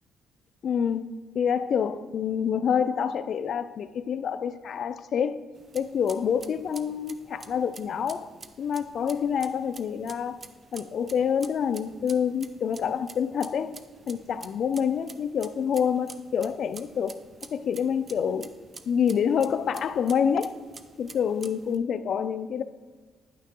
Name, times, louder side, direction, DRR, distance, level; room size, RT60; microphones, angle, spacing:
voice 1, 0.6-1.1 1.3-5.4 5.7-8.3 8.6-10.4 10.7-13.7 14.1-17.2 17.5-18.5 18.9-20.6 21.0-22.6, left 7 dB, 60° left, 0.3 m, -27 dB
sound 1, 5.5-21.8, right 4 dB, 40° right, 0.5 m, -49 dB
9.3 x 5.8 x 2.9 m
cardioid pair, 90°, 0 cm